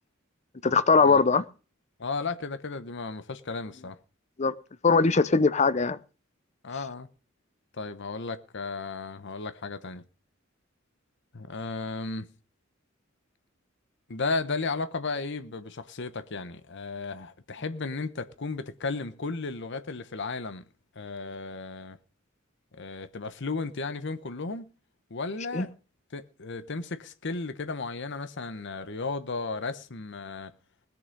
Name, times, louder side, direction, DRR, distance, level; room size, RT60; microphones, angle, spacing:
voice 1, 0.6-1.4 4.4-4.5 4.8-6.0 25.5-25.7, left 4 dB, 35° left, 0.6 m, -21 dB
voice 2, 2.0-4.0 6.6-7.1 7.7-10.0 11.3-12.3 14.1-20.6 20.9-22.0 22.7-24.7 25.1-25.7 26.1-30.5, left 3 dB, 60° left, 1.0 m, -34 dB
20.0 x 6.9 x 5.3 m
head